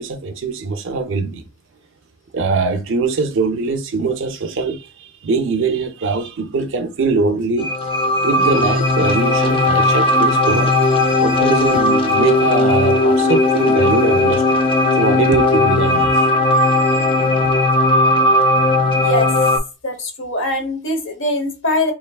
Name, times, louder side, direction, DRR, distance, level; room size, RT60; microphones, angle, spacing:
voice 1, 0.0-1.4 2.3-7.7 8.2-10.7 11.2-14.6 15.0-16.4 16.8-17.1, right 4 dB, 55° right, 0.5 m, -21 dB
sound 1, 7.6-19.6, left 2 dB, 25° left, 0.5 m, -16 dB
voice 2, 19.0-19.3 19.8-21.9, left 1 dB, 55° left, 1.0 m, -22 dB
3.7 x 3.3 x 2.3 m
head